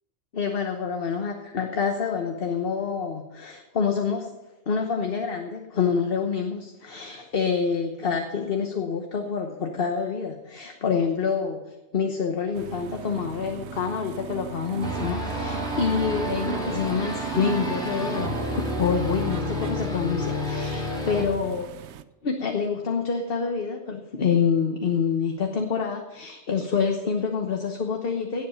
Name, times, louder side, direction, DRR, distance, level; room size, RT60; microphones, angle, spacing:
voice 1, 0.3-4.3 4.7-21.7 22.2-28.5, left 6 dB, 55° left, 4 dB, 1.2 m, -27 dB
sound 1, 12.5-22.0, right 10 dB, 80° right, 0.9 m, -36 dB
sound 2, 14.8-21.2, left 1 dB, 5° left, 3.4 m, -30 dB
17.0 x 7.9 x 5.6 m, 1.1 s
omnidirectional pair, 1.2 m